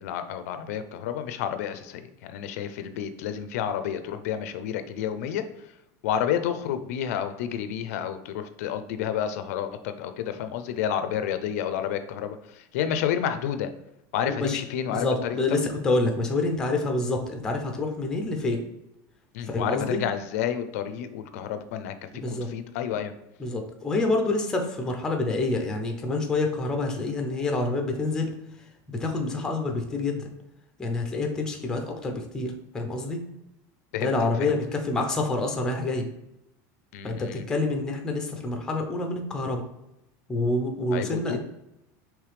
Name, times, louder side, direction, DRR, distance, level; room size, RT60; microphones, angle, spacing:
voice 1, 0.0-5.4 6.0-13.7 14.1-15.4 19.3-21.9 22.3-23.1 33.9-34.1 34.4-34.5 36.9-37.4 40.9-41.4, left 9 dB, 70° left, 9 dB, 0.4 m, -30 dB
voice 2, 14.3-14.6 14.9-18.6 19.5-20.0 21.3-21.4 22.1-22.5 23.4-28.3 28.9-30.3 30.8-33.2 34.0-36.1 37.0-39.6 40.3-41.4, left 2 dB, 5° left, 3 dB, 0.4 m, -27 dB
4.9 x 3.1 x 3.2 m, 0.86 s
supercardioid pair, 180°, 9 cm